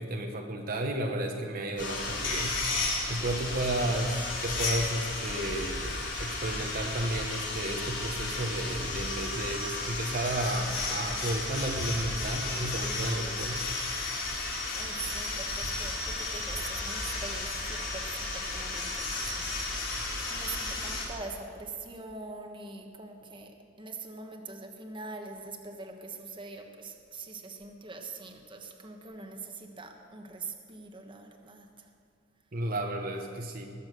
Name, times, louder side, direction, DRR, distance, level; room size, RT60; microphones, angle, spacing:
voice 1, 0.0-2.5 3.1-13.6 32.5-33.7, right 1 dB, 45° right, 2 dB, 1.1 m, -33 dB
sound 1, 1.8-21.1, left 3 dB, 65° left, 3.7 m, -33 dB
voice 2, 14.7-20.0 20.3-31.9, right 3 dB, 25° right, 3 dB, 1.3 m, -43 dB
20.0 x 7.4 x 7.6 m, 2.3 s
head